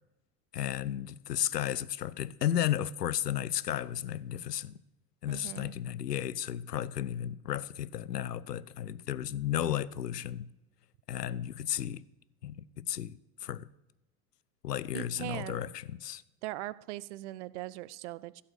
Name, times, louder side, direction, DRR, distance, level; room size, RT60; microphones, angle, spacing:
voice 1, 0.5-4.8 5.2-10.5 11.1-12.0 12.4-13.7 14.6-16.2, left 11 dB, 80° left, 0.6 m, -34 dB
voice 2, 5.3-5.8 14.9-15.6 16.4-18.4, right 17 dB, 50° right, 0.5 m, -40 dB
15.5 x 5.4 x 6.4 m
figure-of-eight pair, 75°, 48 cm